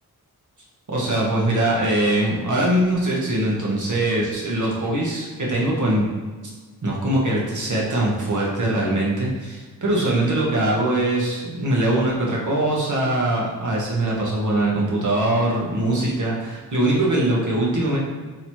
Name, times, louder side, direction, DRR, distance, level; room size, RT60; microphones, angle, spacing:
voice 1, 0.9-6.1 6.8-18.0, right 1 dB, 55° right, -4 dB, 1.2 m, -22 dB
3.0 x 2.9 x 4.5 m, 1.4 s
cardioid pair, 75°, 37 cm